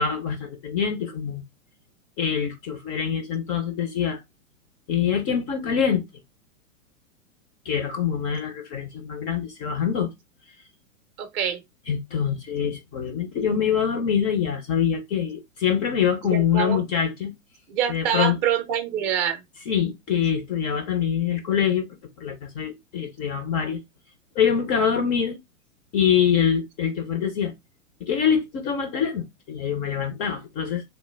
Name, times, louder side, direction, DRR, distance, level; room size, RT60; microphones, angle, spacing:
voice 1, 0.0-1.4 2.2-4.2 4.9-6.0 7.7-10.1 11.9-17.3 17.9-18.4 19.7-21.9 22.2-23.8 24.4-25.4 25.9-27.5 28.0-30.8, left 8 dB, 25° left, 0.4 m, -24 dB
voice 2, 11.2-11.6 16.3-16.8 17.7-19.4, right 9 dB, 30° right, 0.5 m, -25 dB
3.1 x 2.1 x 3.1 m
hypercardioid pair, 110°, 40 cm